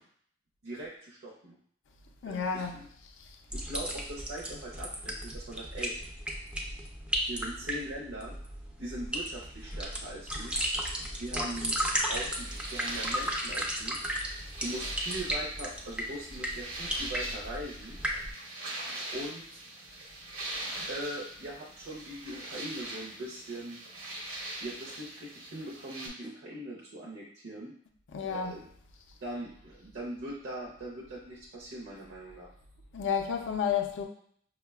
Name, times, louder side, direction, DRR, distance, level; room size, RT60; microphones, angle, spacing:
voice 1, 0.6-1.6 2.2-2.9 3.7-5.9 7.3-8.3 8.8-10.5 11.2-11.8 12.1-14.0 14.6-18.0 19.1-19.6 20.9-23.8 24.6-27.7 28.3-28.7 29.2-32.5, right 1 dB, 55° right, 0.6 m, -41 dB
voice 2, 2.2-2.8 28.1-28.6 32.9-34.0, left 7 dB, 60° left, 0.4 m, -31 dB
sound 1, 3.5-18.3, equal, 5° right, 0.4 m, -35 dB
sound 2, 12.2-26.1, right 2 dB, 80° right, 0.9 m, -42 dB
5.3 x 2.2 x 2.3 m
head